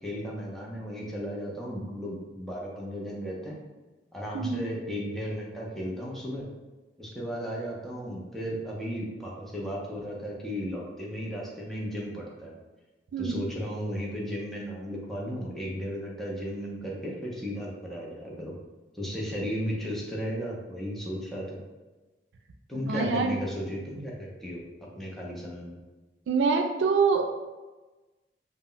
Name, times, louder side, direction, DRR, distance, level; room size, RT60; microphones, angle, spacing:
voice 1, 0.0-3.6 4.1-6.5 7.0-12.5 13.2-18.5 18.9-21.6 22.7-24.6 24.9-25.8, equal, ahead, -4 dB, 0.5 m, -35 dB
voice 2, 13.1-13.4 22.9-23.4 26.3-27.2, right 5 dB, 90° right, 5 dB, 0.3 m, -25 dB
2.1 x 2.0 x 3.7 m, 1.2 s
head